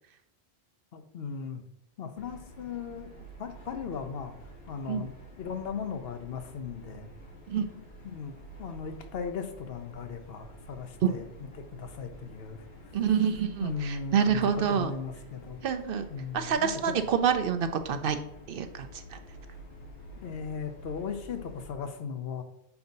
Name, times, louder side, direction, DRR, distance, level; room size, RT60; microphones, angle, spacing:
voice 1, 0.9-1.6 2.0-3.1 3.4-4.3 4.7-7.1 7.7-13.0 13.6-15.6 16.1-16.7 20.2-22.4, left 6 dB, 65° left, 7 dB, 0.9 m, -38 dB
sound 1, 2.2-21.8, right 1 dB, 85° left, 1.5 m, -49 dB
voice 2, 12.9-14.9 15.6-16.0 16.3-18.2 18.5-19.2, right 7 dB, 60° right, 9 dB, 0.7 m, -27 dB
6.9 x 2.7 x 5.2 m, 0.80 s
omnidirectional pair, 1.1 m